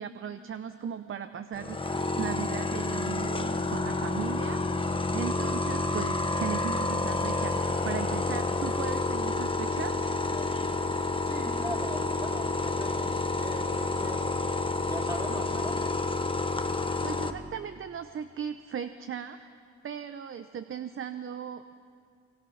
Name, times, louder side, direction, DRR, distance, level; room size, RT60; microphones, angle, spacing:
voice 1, 0.0-10.0 17.0-19.5 19.8-21.7, right 8 dB, 45° right, 10 dB, 0.8 m, -37 dB
sound 1, 1.5-17.3, left 3 dB, 15° left, 1.2 m, -29 dB
voice 2, 11.2-14.4 14.7-15.8, right 1 dB, 10° right, 0 dB, 3.7 m, -40 dB
24.5 x 23.5 x 5.8 m, 2.3 s
cardioid pair, 90°, 30 cm